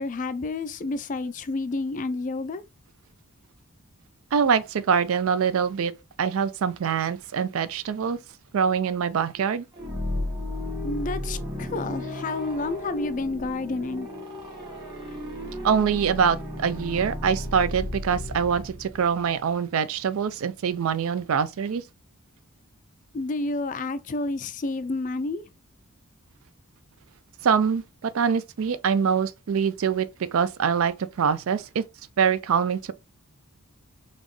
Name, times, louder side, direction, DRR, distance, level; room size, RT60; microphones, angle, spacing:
voice 1, 0.0-2.6 10.8-14.1 23.1-25.5, left 3 dB, 35° left, 0.3 m, -30 dB
voice 2, 4.3-5.9 6.2-8.2 8.5-9.7 15.6-21.8 27.4-31.8 32.2-32.9, right 6 dB, 70° right, 0.4 m, -24 dB
sound 1, 9.7-19.5, left 1 dB, 20° right, 1.4 m, -34 dB
4.2 x 3.0 x 3.0 m
head